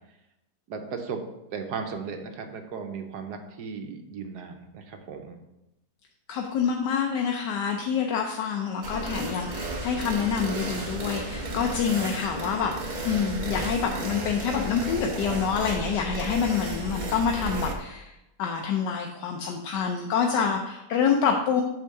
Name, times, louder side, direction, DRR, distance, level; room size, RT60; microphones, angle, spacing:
voice 1, 0.7-1.2 1.5-5.4, right 5 dB, 75° right, 5 dB, 1.4 m, -36 dB
voice 2, 6.3-18.1 18.4-21.6, left 7 dB, 85° left, 2 dB, 1.3 m, -27 dB
sound 1, 8.8-17.7, right 2 dB, 35° right, 0.8 m, -33 dB
8.4 x 3.7 x 6.4 m, 0.91 s
omnidirectional pair, 1.8 m